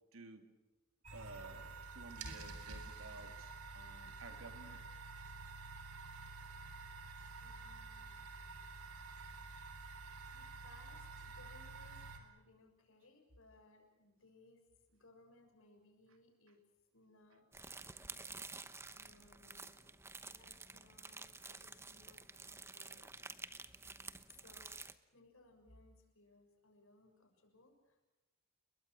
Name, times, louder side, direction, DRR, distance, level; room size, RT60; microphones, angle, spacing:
voice 1, 0.1-0.4 1.1-4.8 10.2-10.4, right 3 dB, 65° right, 6 dB, 3.1 m, -54 dB
sound 1, 1.0-12.2, right 4 dB, 85° right, 4.0 m, -50 dB
voice 2, 7.4-8.2 10.3-16.6 16.9-17.7 18.6-19.8 20.2-23.1 24.3-28.1, left 2 dB, 65° left, 4 dB, 6.5 m, -65 dB
sound 2, 17.5-24.9, right 3 dB, 10° right, 1.0 m, -51 dB
30.0 x 22.5 x 6.3 m, 1.1 s
head